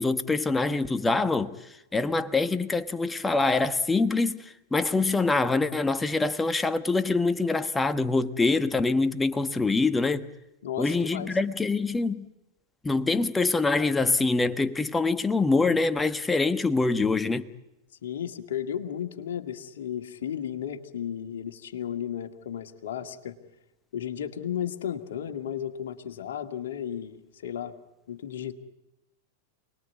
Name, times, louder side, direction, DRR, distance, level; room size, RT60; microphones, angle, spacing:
voice 1, 0.0-1.6 1.9-4.4 4.7-10.3 10.8-12.2 12.8-17.5, left 3 dB, 10° left, 1.2 m, -25 dB
voice 2, 10.6-11.3 18.0-23.4 23.9-27.7 28.1-28.5, left 9 dB, 70° left, 2.0 m, -34 dB
28.5 x 20.5 x 9.5 m
hypercardioid pair, 95°, 0 cm